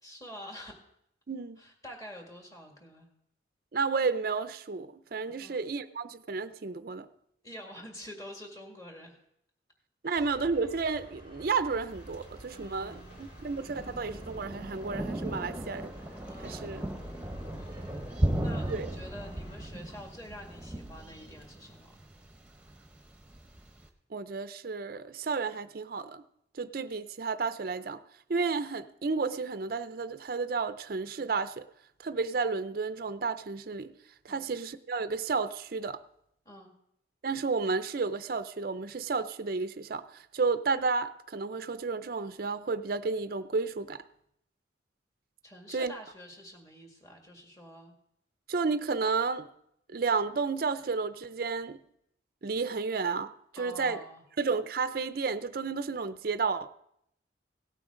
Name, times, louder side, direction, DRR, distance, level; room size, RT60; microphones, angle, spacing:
voice 1, 0.0-0.7 1.6-3.1 5.4-5.6 7.4-9.2 10.0-10.3 12.5-13.3 16.2-16.9 17.7-22.0 34.3-34.5 36.5-36.7 45.4-47.9 53.6-54.2, equal, 20° left, 1 dB, 1.9 m, -47 dB
voice 2, 1.3-1.6 3.7-7.1 10.0-15.9 16.4-16.8 18.7-18.9 24.1-26.2 26.6-28.0 28.3-31.7 32.0-33.9 34.2-36.0 37.2-44.0 45.7-45.9 48.5-49.5 49.9-51.8 52.4-54.0 54.4-56.7, right 4 dB, 50° right, 11 dB, 0.5 m, -32 dB
sound 1, 10.1-19.7, equal, 55° left, 5.6 m, -50 dB
Thunder, 11.9-23.9, right 1 dB, 5° right, 1.0 m, -37 dB
17.0 x 8.8 x 3.7 m, 0.74 s
head